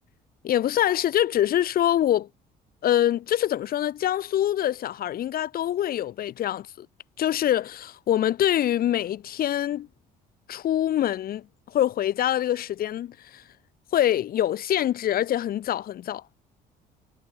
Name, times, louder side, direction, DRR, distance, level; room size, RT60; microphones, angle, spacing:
voice 1, 0.4-2.3 2.8-6.9 7.2-9.9 10.5-13.4 13.9-16.2, left 12 dB, 60° left, 3.2 m, -25 dB
cardioid pair, 110°, 17 cm